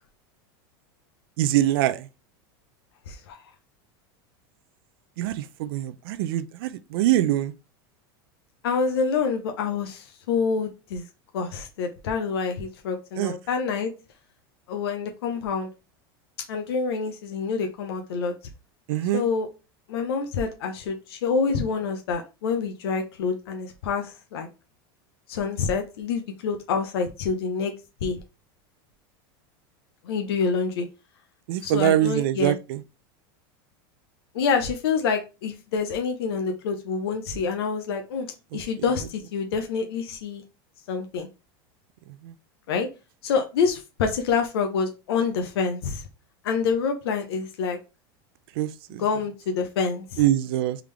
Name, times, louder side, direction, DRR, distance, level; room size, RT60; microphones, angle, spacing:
voice 1, 1.4-2.0 5.2-7.5 13.2-13.3 18.9-19.2 31.5-32.8 48.6-49.0 50.2-50.8, right 13 dB, 70° right, 0.5 m, -23 dB
voice 2, 3.1-3.4 8.6-11.1 11.3-13.9 14.7-15.7 16.5-18.3 19.1-19.5 19.9-24.5 25.3-27.7 28.0-28.2 30.0-30.9 31.6-32.6 34.3-38.3 38.5-40.4 40.9-41.3 42.7-42.9 43.2-46.0 46.4-47.8 49.0-50.2, left 5 dB, 90° left, 0.8 m, -27 dB
3.7 x 3.4 x 3.3 m
supercardioid pair, 140°, 13 cm